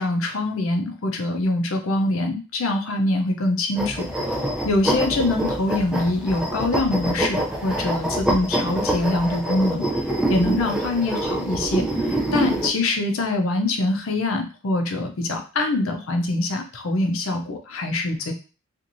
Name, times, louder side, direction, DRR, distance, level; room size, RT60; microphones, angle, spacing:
voice 1, 0.0-4.1 4.6-10.0 10.3-18.3, left 2 dB, 70° left, 4 dB, 0.5 m, -24 dB
sound 1, 3.8-12.7, right 1 dB, 5° right, 0.4 m, -25 dB
2.9 x 2.5 x 2.6 m, 0.34 s
head